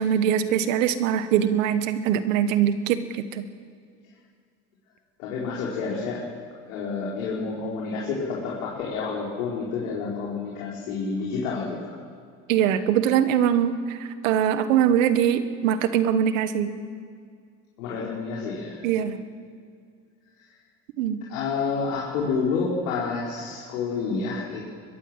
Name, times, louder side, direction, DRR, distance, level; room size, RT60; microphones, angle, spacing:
voice 1, 0.0-3.4 12.5-16.7 18.8-19.2 21.0-21.2, right 9 dB, 80° right, 11 dB, 1.6 m, -22 dB
voice 2, 5.2-6.2 6.7-11.9 17.8-18.8 21.3-24.7, left 4 dB, 85° left, -5 dB, 4.7 m, -29 dB
22.5 x 20.5 x 7.7 m, 2.2 s
hypercardioid pair, 80°, 38 cm